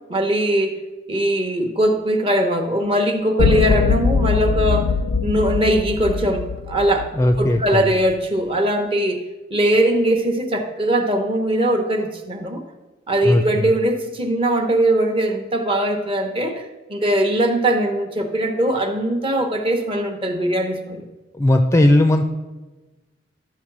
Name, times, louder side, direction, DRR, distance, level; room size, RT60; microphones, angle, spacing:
voice 1, 0.1-0.8 1.1-4.9 5.2-7.1 7.4-9.2 9.5-12.6 13.1-16.6 16.9-21.0, right 1 dB, 30° right, 5 dB, 1.0 m, -20 dB
sound 1, 3.4-7.7, left 5 dB, 90° left, 0.5 m, -21 dB
voice 2, 7.2-7.9 13.2-13.6 21.4-22.4, left 1 dB, 15° left, 6 dB, 0.5 m, -17 dB
13.0 x 4.7 x 6.0 m, 1.2 s
head